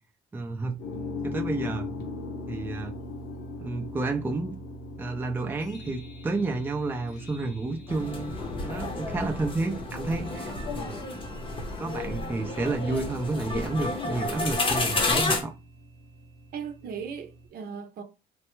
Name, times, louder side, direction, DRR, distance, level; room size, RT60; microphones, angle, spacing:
voice 1, 0.3-0.8 1.2-1.9 2.5-2.9 3.6-4.5 5.0-8.3 8.6-11.0 11.8-15.5, right 3 dB, 10° right, 0.4 m, -30 dB
sound 1, 0.8-17.5, left 2 dB, 70° left, 0.8 m, -41 dB
sound 2, 7.9-15.4, left 3 dB, 30° left, 0.8 m, -31 dB
voice 2, 16.5-18.0, right 6 dB, 60° right, 0.7 m, -37 dB
3.3 x 2.1 x 3.0 m
cardioid pair, 110°, 17 cm